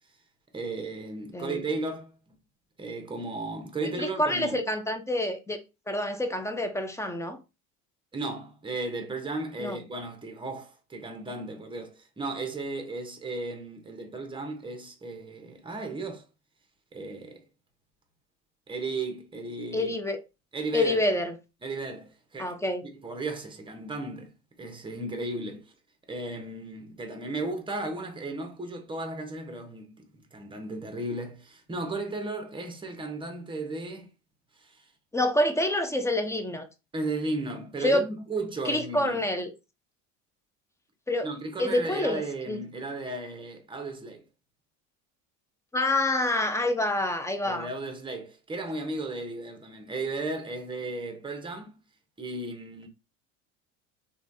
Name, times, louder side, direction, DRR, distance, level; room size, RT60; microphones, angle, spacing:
voice 1, 0.5-2.2 2.8-4.6 8.1-16.3 16.9-17.4 18.7-20.0 20.5-21.0 21.6-22.5 22.8-25.7 26.1-30.1 30.3-34.1 34.6-34.9 36.9-39.2 41.2-44.2 47.4-51.7 52.2-52.9, right 2 dB, 15° right, 0.8 m, -35 dB
voice 2, 4.0-5.6 5.9-7.4 9.6-9.8 19.7-20.2 20.7-21.4 22.4-22.9 35.1-36.7 37.8-38.0 38.6-39.5 41.1-42.6 45.7-47.7, left 1 dB, 10° left, 0.4 m, -27 dB
3.1 x 2.3 x 2.6 m
hypercardioid pair, 80°, 40 cm